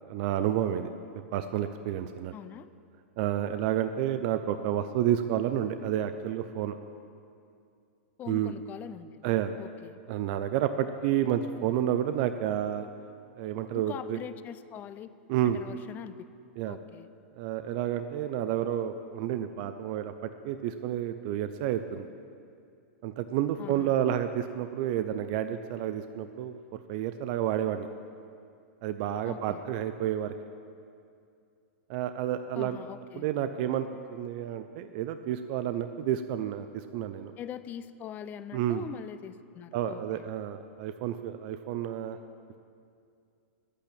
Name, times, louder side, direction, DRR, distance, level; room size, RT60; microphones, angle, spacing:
voice 1, 0.1-0.9 1.3-2.3 3.2-6.8 8.3-8.5 9.2-9.5 10.1-12.9 13.4-14.2 15.3-15.6 16.6-16.8 17.4-22.1 23.0-26.6 26.9-27.9 28.8-30.3 31.9-32.8 33.2-37.3 38.5-38.9 39.7-42.2, right 11 dB, 45° right, 9 dB, 0.5 m, -30 dB
voice 2, 2.3-2.7 8.2-9.1 9.6-10.0 13.7-15.1 15.5-16.2 16.7-17.1 23.6-23.9 29.2-29.6 32.5-33.3 37.4-40.3, left 9 dB, 25° left, 14 dB, 0.5 m, -42 dB
10.0 x 8.3 x 8.7 m, 2.4 s
hypercardioid pair, 135°, 7 cm